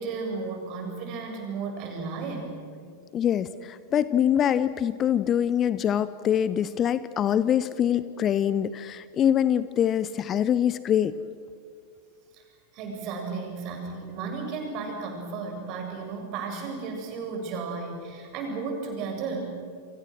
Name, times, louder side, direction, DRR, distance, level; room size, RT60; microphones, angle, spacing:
voice 1, 0.0-2.6 12.3-12.4 12.7-19.5, right 4 dB, 40° right, 3 dB, 7.2 m, -34 dB
voice 2, 3.1-11.2, left 9 dB, 30° left, 15 dB, 0.8 m, -24 dB
30.0 x 26.0 x 6.4 m, 2.1 s
figure-of-eight pair, 90°, 0 cm